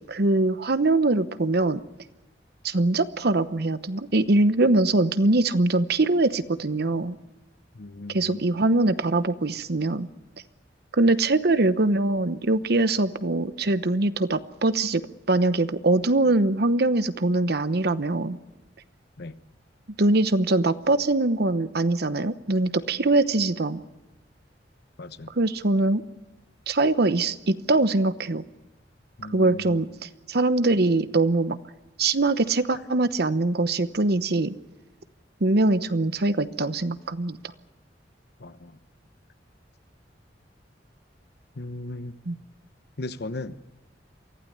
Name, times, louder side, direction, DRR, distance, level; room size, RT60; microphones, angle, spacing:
voice 1, 0.1-1.8 2.6-7.1 8.1-10.1 11.0-15.0 15.3-18.4 20.0-23.8 25.3-26.0 26.7-28.4 29.3-31.6 32.0-34.5 35.4-37.4 42.3-42.4, right 2 dB, 60° right, 13 dB, 1.0 m, -22 dB
voice 2, 7.7-8.4 19.2-19.4 25.0-25.3 29.2-29.8 38.4-38.7 41.5-42.2 43.0-43.6, left 2 dB, 65° left, 12 dB, 1.0 m, -37 dB
24.0 x 15.5 x 9.5 m, 1.0 s
head